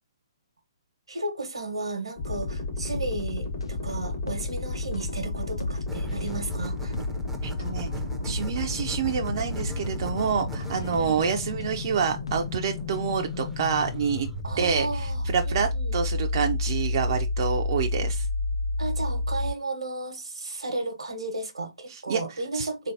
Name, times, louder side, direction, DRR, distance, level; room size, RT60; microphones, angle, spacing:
voice 1, 1.1-7.0 10.7-11.2 14.4-16.0 18.8-22.9, right 2 dB, 85° right, 1.0 m, -34 dB
sound 1, 2.2-19.5, left 2 dB, 50° left, 1.4 m, -31 dB
sound 2, 2.9-13.2 13.4-13.5, left 2 dB, 80° left, 0.5 m, -41 dB
sound 3, 5.9-14.4, right 2 dB, 5° right, 0.6 m, -41 dB
voice 2, 7.4-7.9 8.2-14.3 14.6-18.3 21.9-22.7, right 6 dB, 50° right, 0.5 m, -28 dB
3.8 x 3.2 x 2.7 m
figure-of-eight pair, 130°, 3 cm